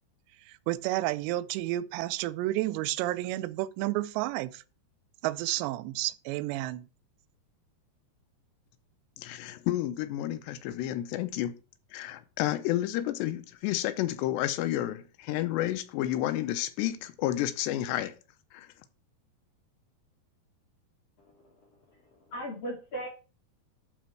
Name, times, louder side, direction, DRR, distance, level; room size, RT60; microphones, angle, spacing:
voice 1, 0.5-4.6 5.2-6.9, right 16 dB, 90° right, 2.7 m, -31 dB
voice 2, 9.2-11.6 11.9-18.1 18.5-18.7, left 13 dB, 85° left, 2.9 m, -31 dB
voice 3, 22.3-23.1, right 1 dB, 60° left, 1.6 m, -37 dB
12.0 x 4.3 x 4.5 m
omnidirectional pair, 4.9 m